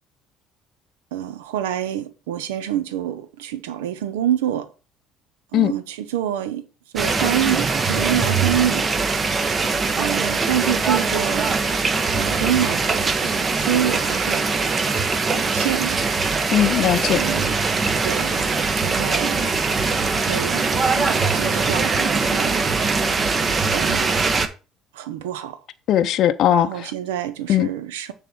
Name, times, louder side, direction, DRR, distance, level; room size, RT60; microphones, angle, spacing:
voice 1, 1.1-4.7 5.5-6.7 6.9-8.9 10.0-11.8 12.1-14.5 15.3-16.0 17.1-17.6 18.0-19.5 20.2-22.6 23.7-24.2 24.9-25.6 26.5-28.1, right 11 dB, 85° right, 0.7 m, -27 dB
sound 1, 7.0-24.5, right 4 dB, 35° right, 1.0 m, -22 dB
voice 2, 16.5-17.2 25.9-26.9 27.5-27.7, left 11 dB, 60° left, 0.5 m, -18 dB
6.8 x 3.8 x 6.0 m
hypercardioid pair, 65°, 0 cm